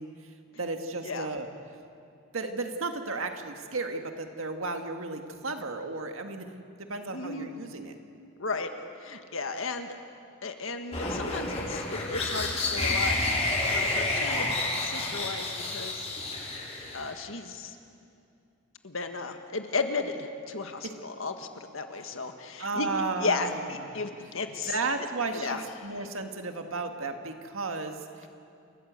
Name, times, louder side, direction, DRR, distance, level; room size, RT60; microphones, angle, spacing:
voice 1, 0.0-1.5 2.3-6.5 6.8-8.0 20.8-20.9 22.6-23.9 24.6-28.3, right 3 dB, 70° right, 5 dB, 1.8 m, -34 dB
voice 2, 7.1-7.5 8.4-8.7 9.0-9.9 10.4-13.2 13.6-16.1 16.9-17.7 18.8-22.9 23.2-24.7 25.3-25.6, left 4 dB, 70° left, 6 dB, 1.7 m, -34 dB
sound 1, 10.9-17.1, left 2 dB, 30° left, 4.0 m, -29 dB
29.0 x 14.5 x 8.2 m, 2.6 s
head